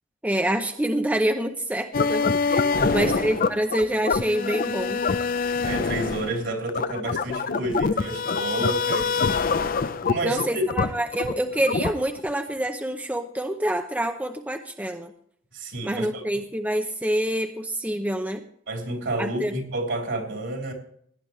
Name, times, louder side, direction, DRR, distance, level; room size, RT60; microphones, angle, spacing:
voice 1, 0.2-5.0 10.2-15.1 15.8-18.4 19.2-19.5, right 1 dB, 10° right, 5 dB, 0.7 m, -26 dB
sound 1, 1.9-12.3, left 4 dB, 45° left, 0.5 m, -25 dB
voice 2, 2.7-3.1 5.4-9.3 10.1-10.7 15.5-16.2 18.7-20.7, right 1 dB, 70° right, 1 dB, 3.5 m, -30 dB
17.0 x 10.5 x 3.2 m, 0.65 s
head